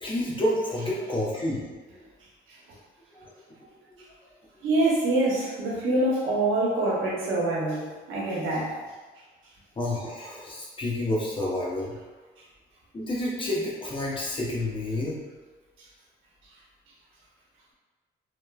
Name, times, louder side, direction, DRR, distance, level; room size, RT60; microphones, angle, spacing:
voice 1, 0.0-2.1 3.1-3.3 3.9-4.0 9.8-12.0 12.9-15.2, left 1 dB, 25° left, -5 dB, 0.8 m, -29 dB
voice 2, 4.6-8.7, right 2 dB, 85° right, -5 dB, 0.9 m, -25 dB
3.0 x 2.0 x 2.2 m, 1.3 s
cardioid pair, 90°, 20 cm